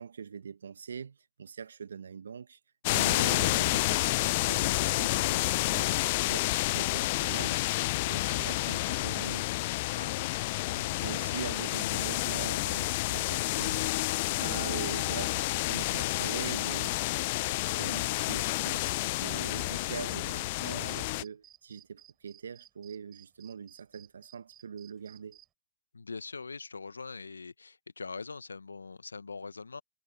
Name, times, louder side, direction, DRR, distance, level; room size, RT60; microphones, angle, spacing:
voice 1, 0.0-2.6 2.9-5.9 6.3-7.6 8.0-9.6 9.9-14.0 14.3-18.9 19.2-25.4, right 6 dB, 80° right, 1.3 m, -42 dB
sound 1, 2.8-21.2, left 20 dB, 55° left, 0.4 m, -30 dB
sound 2, 14.5-25.5, right 12 dB, 35° right, 3.3 m, -57 dB
voice 2, 25.9-29.8, left 4 dB, 85° left, 0.9 m, -42 dB
figure-of-eight pair, 95°, 0 cm